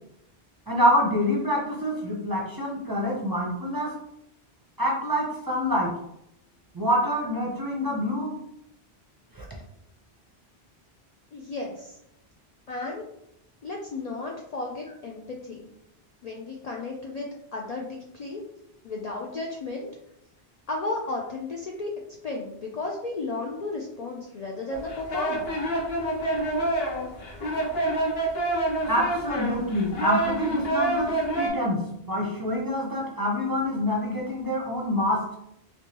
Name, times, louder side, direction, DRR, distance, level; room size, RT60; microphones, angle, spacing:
voice 1, 0.7-3.9 4.8-5.9 6.7-8.4 9.3-9.4 28.9-31.8 32.1-35.2, equal, 25° right, -3 dB, 0.6 m, -26 dB
voice 2, 11.3-12.0 12.7-13.0 13.6-15.7 16.2-17.3 17.5-18.4 18.8-19.9 20.7-21.9 22.2-25.5, left 2 dB, 55° left, -1 dB, 0.4 m, -34 dB
sound 1, 24.7-31.5, right 1 dB, 70° left, 1.1 m, -27 dB
3.3 x 3.1 x 2.9 m, 0.80 s
omnidirectional pair, 1.1 m